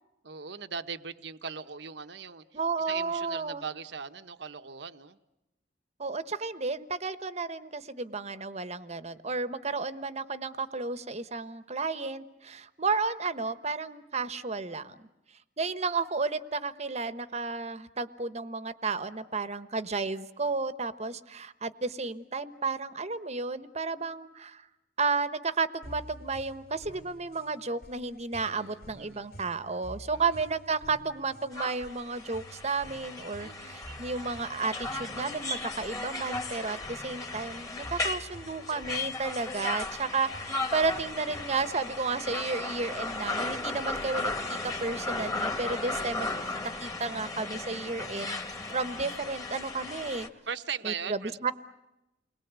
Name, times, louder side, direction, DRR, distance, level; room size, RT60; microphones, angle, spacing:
voice 1, 0.2-2.6 2.9-5.2 28.5-29.2 30.1-30.2 33.4-33.8 50.5-51.5, right 6 dB, 70° right, 10 dB, 1.1 m, -39 dB
voice 2, 2.5-3.6 6.0-12.2 12.8-14.8 15.6-24.5 25.0-33.5 34.0-34.7 35.0-36.8 37.0-40.3 40.7-44.3 44.8-46.3 46.8-48.4 48.7-50.3 50.8-51.5, right 4 dB, 40° right, 13 dB, 1.1 m, -32 dB
sound 1, 25.8-41.8, right 1 dB, 55° left, 3.2 m, -50 dB
sound 2, 31.5-50.3, left 2 dB, 20° left, 2.1 m, -36 dB
29.5 x 22.0 x 8.2 m, 0.92 s
head